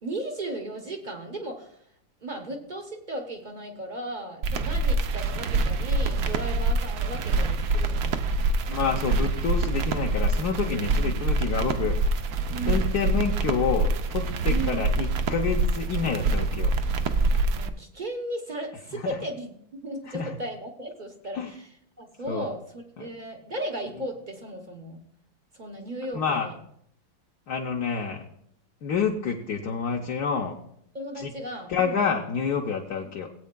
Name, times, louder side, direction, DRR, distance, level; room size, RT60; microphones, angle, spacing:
voice 1, 0.0-1.8 2.2-8.2 12.5-13.0 14.5-14.9 17.5-25.0 25.5-26.6 30.9-32.1, right 1 dB, 40° right, 3 dB, 0.7 m, -36 dB
sound 1, 4.4-17.7, right 3 dB, 65° right, 0.9 m, -25 dB
voice 2, 8.7-12.2 12.7-16.7 19.0-19.1 20.1-20.3 21.4-21.5 22.3-22.4 23.0-23.1 26.1-26.5 27.5-28.2 28.8-30.5 31.2-31.3 31.7-33.3, left 6 dB, 60° left, 1 dB, 1.2 m, -28 dB
19.0 x 8.3 x 2.3 m, 0.69 s
omnidirectional pair, 2.2 m